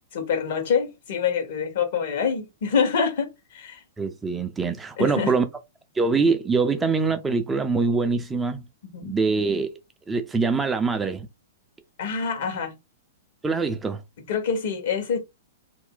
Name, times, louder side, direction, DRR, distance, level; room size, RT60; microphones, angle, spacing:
voice 1, 0.1-3.8 5.0-5.3 8.9-9.1 12.0-12.7 14.3-15.2, left 6 dB, 55° left, 1.0 m, -26 dB
voice 2, 4.0-5.4 6.0-8.6 9.0-9.7 10.1-11.3 13.4-14.0, right 4 dB, 15° right, 0.4 m, -24 dB
2.5 x 2.1 x 3.7 m
figure-of-eight pair, 105°, 0 cm